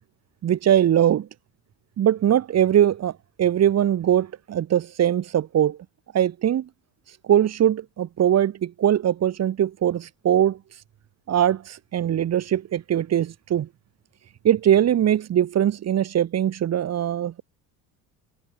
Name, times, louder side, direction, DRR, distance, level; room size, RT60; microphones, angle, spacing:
voice 1, 0.4-1.3 2.0-3.1 3.4-5.8 6.1-6.7 7.3-10.6 11.3-13.7 14.4-17.4, right 10 dB, 40° right, 1.4 m, -21 dB
supercardioid pair, 100°, 39 cm